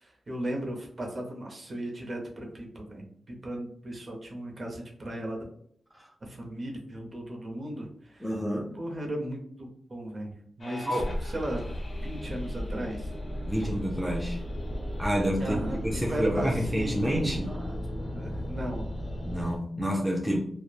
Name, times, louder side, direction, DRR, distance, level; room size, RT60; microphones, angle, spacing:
voice 1, 0.0-5.4 6.2-8.3 8.7-10.3 10.6-11.0 11.3-11.6 12.0-13.1 15.4-17.8 18.1-18.9, right 1 dB, 40° right, 1 dB, 0.7 m, -36 dB
voice 2, 8.2-8.7 10.8-11.1 13.4-14.4 15.0-17.5 19.3-20.5, equal, ahead, -1 dB, 0.4 m, -29 dB
sound 1, 10.6-19.6, left 1 dB, 40° left, 0.6 m, -35 dB
3.0 x 2.1 x 2.3 m, 0.64 s
wide cardioid pair, 100°, 0 cm